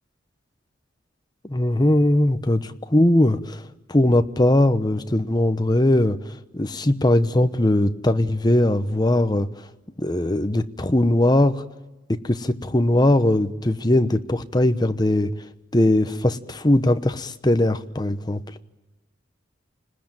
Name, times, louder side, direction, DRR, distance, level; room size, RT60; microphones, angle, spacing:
voice 1, 1.4-3.6 3.9-9.5 10.0-11.6 12.1-15.3 15.7-18.4, left 1 dB, 20° left, 10 dB, 0.9 m, -20 dB
30.0 x 20.0 x 9.0 m, 1.1 s
head